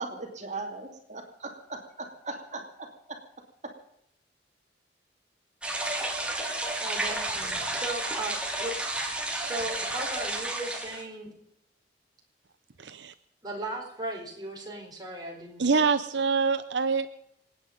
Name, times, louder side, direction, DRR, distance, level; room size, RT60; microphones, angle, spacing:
voice 1, 0.0-3.2, right 3 dB, 40° right, 3 dB, 2.7 m, -39 dB
sound 1, 5.6-11.0, right 2 dB, 5° right, 2.5 m, -31 dB
voice 2, 6.8-8.8 9.4-11.3 13.4-15.8 16.2-16.3, right 2 dB, 20° right, 0 dB, 4.6 m, -37 dB
voice 3, 12.8-13.1 15.6-17.1, right 4 dB, 75° right, 11 dB, 0.7 m, -25 dB
27.5 x 9.4 x 5.3 m, 0.77 s
head